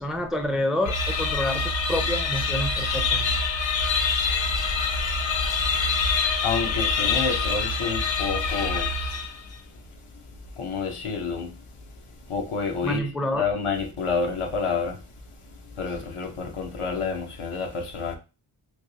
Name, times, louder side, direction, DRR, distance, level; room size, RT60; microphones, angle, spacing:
voice 1, 0.0-3.4 12.8-13.4, left 1 dB, ahead, 0.4 m, -28 dB
sound 1, 0.8-9.5, left 4 dB, 65° left, 0.6 m, -25 dB
voice 2, 6.4-8.9 10.6-11.5 12.3-13.1 13.4-15.0 15.8-18.2, left 5 dB, 80° left, 0.9 m, -28 dB
3.3 x 2.9 x 2.8 m
wide cardioid pair, 95°, 50 cm